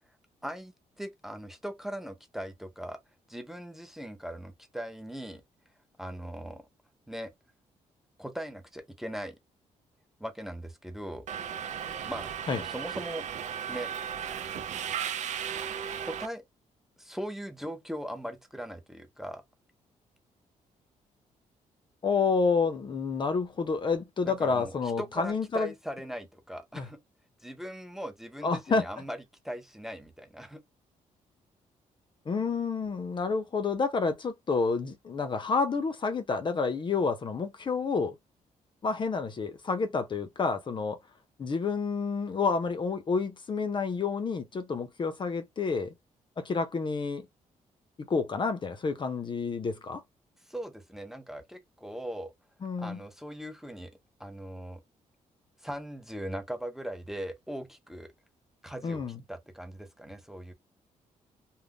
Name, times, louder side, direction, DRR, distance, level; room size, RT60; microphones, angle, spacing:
voice 1, 0.4-3.0 3.3-5.4 6.0-6.6 7.1-7.3 8.2-9.4 10.2-11.3 12.1-13.3 13.7-13.9 16.0-16.4 17.0-19.4 24.2-27.0 27.4-29.2 29.4-30.6 50.5-52.3 52.8-53.9 54.2-54.8 55.6-58.1 58.6-59.0 59.3-60.5, equal, 5° right, 0.7 m, -39 dB
Subway metro underground, 11.3-16.3, right 8 dB, 65° right, 0.5 m, -35 dB
voice 2, 22.0-25.7 26.8-26.9 28.4-28.8 32.3-38.2 38.8-41.0 41.4-45.9 46.4-47.3 48.0-50.0 52.6-53.0 58.8-59.2, left 4 dB, 35° left, 0.6 m, -29 dB
2.5 x 2.1 x 3.5 m
cardioid pair, 105°, 13 cm